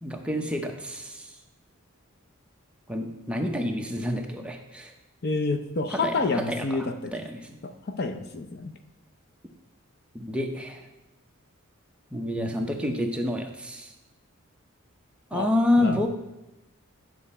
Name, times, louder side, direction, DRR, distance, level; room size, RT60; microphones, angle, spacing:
voice 1, 0.0-1.3 2.9-4.9 5.9-7.6 10.1-10.9 12.1-13.9 15.3-16.1, left 1 dB, 5° right, 2 dB, 0.7 m, -28 dB
voice 2, 5.2-6.9 7.6-8.7 15.3-15.5 15.8-15.9, left 3 dB, 50° left, 7 dB, 0.6 m, -28 dB
9.9 x 6.0 x 4.2 m, 0.94 s
head